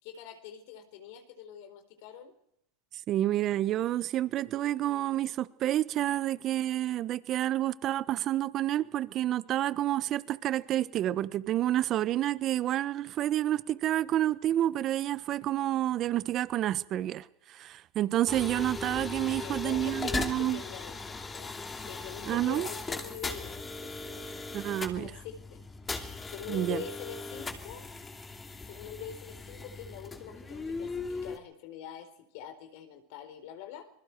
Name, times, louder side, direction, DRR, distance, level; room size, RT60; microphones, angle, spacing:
voice 1, 0.0-2.3 19.4-24.3 24.9-25.6 26.3-27.9 28.7-33.9, left 8 dB, 60° left, 4.2 m, -44 dB
voice 2, 3.1-20.6 22.3-22.7 24.5-25.1 26.5-26.8, right 13 dB, 40° right, 1.2 m, -29 dB
sound 1, 18.3-31.4, left 3 dB, 15° left, 2.8 m, -38 dB
27.5 x 21.0 x 4.7 m
hypercardioid pair, 115°, 0 cm